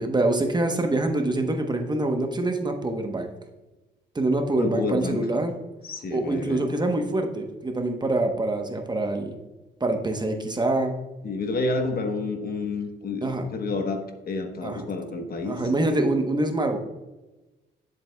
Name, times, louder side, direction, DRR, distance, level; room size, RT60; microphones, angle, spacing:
voice 1, 0.0-3.3 4.1-5.5 6.1-9.4 9.8-10.9 13.2-13.4 14.6-14.8 15.4-16.8, right 2 dB, 20° right, 4 dB, 1.0 m, -25 dB
voice 2, 4.6-5.2 5.9-6.7 11.2-15.6, left 3 dB, 50° left, 5 dB, 1.1 m, -29 dB
10.0 x 7.5 x 2.3 m, 1.1 s
cardioid pair, 90°, 20 cm